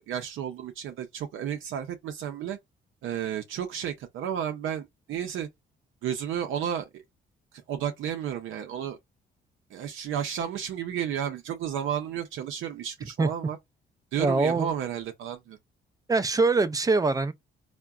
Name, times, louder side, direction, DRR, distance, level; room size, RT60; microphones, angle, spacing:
voice 1, 0.0-2.6 3.0-5.5 6.0-7.0 7.7-9.0 9.7-13.6 14.1-15.6, right 9 dB, 80° right, 0.5 m, -32 dB
voice 2, 14.2-14.7 16.1-17.3, right 3 dB, 20° right, 0.3 m, -23 dB
3.6 x 2.1 x 2.3 m
cardioid pair, 90°, 20 cm